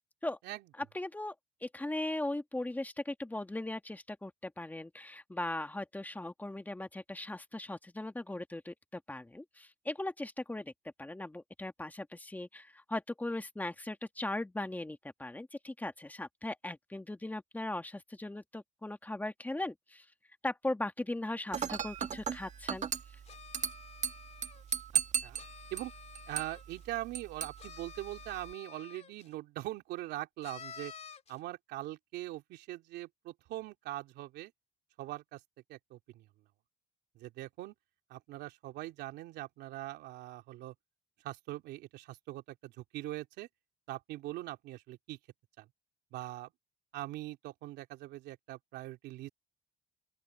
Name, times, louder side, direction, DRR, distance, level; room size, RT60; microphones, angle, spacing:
voice 1, 0.8-1.3 1.6-10.7 11.0-20.1 20.4-22.9, left 2 dB, 10° left, 2.1 m, -38 dB
Dishes pots and pans / Glass, 21.5-28.5, right 8 dB, 45° right, 1.7 m, -38 dB
sound 1, 23.3-24.8 25.3-26.8 27.6-29.3 30.4-31.4, left 7 dB, 40° left, 3.9 m, -51 dB
voice 2, 26.3-30.9 31.3-34.5 35.0-35.4 35.7-36.3 37.1-37.7 38.1-40.7 41.2-43.5 43.9-45.2 45.6-45.7 46.1-46.5 46.9-49.3, right 16 dB, 85° right, 3.3 m, -42 dB
open air
cardioid pair, 110°, 17 cm